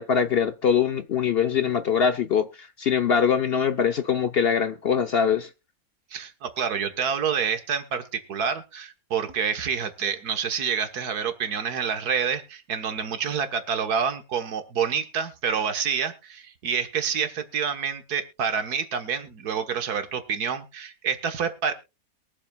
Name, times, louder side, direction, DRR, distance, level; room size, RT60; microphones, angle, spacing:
voice 1, 0.0-5.5, left 7 dB, 55° left, 0.7 m, -23 dB
voice 2, 6.1-21.7, right 7 dB, 85° right, 1.9 m, -28 dB
22.5 x 7.5 x 2.3 m
omnidirectional pair, 1.6 m